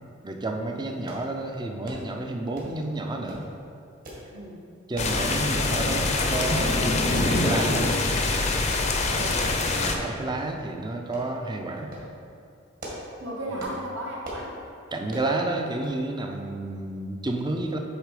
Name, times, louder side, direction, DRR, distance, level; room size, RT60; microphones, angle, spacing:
voice 1, 0.2-3.5 4.9-8.0 9.7-11.9 13.5-13.6 14.9-17.8, right 2 dB, 20° right, 3 dB, 0.5 m, -30 dB
sound 1, 1.1-1.3 1.8-2.1 2.5-2.8 3.3-3.5 4.0-4.3 4.9-5.2 5.9-6.1 6.6-6.9 7.2-7.3 7.7-7.8 8.5-8.7 9.6-10.0 10.4-10.5 11.1-11.3 11.8-12.1 12.6-13.1 13.6-13.8 14.2-14.5 15.1-15.3 15.8-16.0 16.3-16.4, equal, 45° right, 1.6 m, -39 dB
voice 2, 4.3-4.7 9.1-9.4 13.2-14.5, right 1 dB, 60° right, -3 dB, 1.3 m, -35 dB
sound 2, 5.0-9.9, left 2 dB, 35° left, 0.6 m, -24 dB
8.3 x 3.8 x 4.9 m, 2.4 s
head